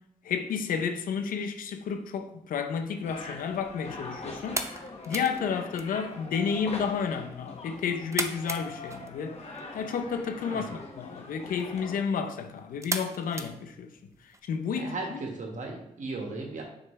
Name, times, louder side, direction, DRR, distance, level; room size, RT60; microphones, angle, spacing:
voice 1, 0.2-4.6 5.1-9.4 9.7-13.9 14.4-15.2, left 6 dB, 80° left, 0.7 m, -31 dB
sound 1, 3.0-12.0, left 2 dB, 50° left, 1.4 m, -43 dB
sound 2, 3.0-14.4, right 2 dB, 20° right, 0.7 m, -40 dB
voice 2, 10.4-10.8 14.7-16.6, right 3 dB, 60° right, 1.6 m, -36 dB
6.2 x 5.0 x 3.2 m
supercardioid pair, 50°, 14 cm